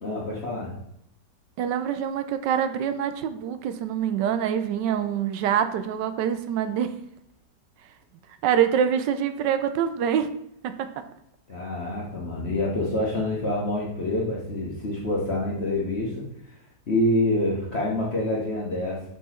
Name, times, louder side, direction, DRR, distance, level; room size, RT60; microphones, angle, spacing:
voice 1, 0.0-0.7 11.5-16.5 16.9-19.0, left 1 dB, 40° left, -5 dB, 1.3 m, -27 dB
voice 2, 1.6-6.9 8.4-10.3 10.6-10.7, right 9 dB, 85° right, 10 dB, 1.3 m, -25 dB
5.9 x 4.5 x 4.3 m, 0.77 s
omnidirectional pair, 1.9 m